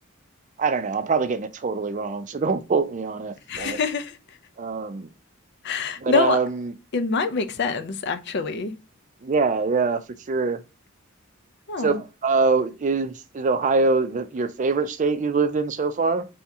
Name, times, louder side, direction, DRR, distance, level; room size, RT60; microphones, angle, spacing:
voice 1, 0.6-3.8 4.6-5.1 6.0-6.7 9.2-10.0 10.3-10.6 11.8-16.3, right 4 dB, 40° right, 0.4 m, -24 dB
voice 2, 3.5-4.2 5.6-6.4 6.9-8.8 11.7-12.0, left 4 dB, 55° left, 0.5 m, -25 dB
3.5 x 2.8 x 4.6 m
head